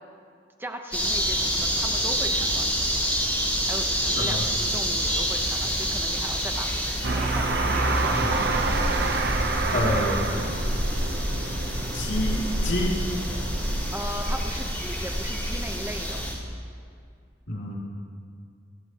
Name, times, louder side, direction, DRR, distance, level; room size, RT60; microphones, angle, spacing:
voice 1, 0.6-2.7 3.7-8.4 13.9-16.2, equal, 10° right, 4 dB, 1.0 m, -38 dB
sound 1, 0.9-16.3, equal, 10° left, 4.4 m, -27 dB
sound 2, 7.0-14.0, right 3 dB, 60° right, 0.9 m, -28 dB
voice 2, 8.1-8.4 9.7-10.3 11.9-13.0 17.5-17.8, left 1 dB, 75° left, -5 dB, 3.0 m, -28 dB
27.5 x 13.0 x 3.1 m, 2.3 s
head